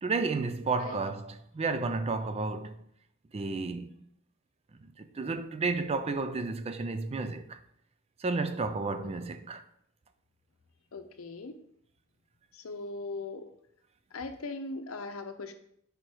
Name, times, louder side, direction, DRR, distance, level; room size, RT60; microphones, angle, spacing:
voice 1, 0.0-2.8 3.3-4.0 4.8-7.6 8.2-9.6, right 3 dB, 30° right, 0.4 m, -32 dB
voice 2, 10.9-11.6 12.5-13.5 14.1-15.5, left 3 dB, 70° left, 0.6 m, -39 dB
5.0 x 4.5 x 4.7 m
head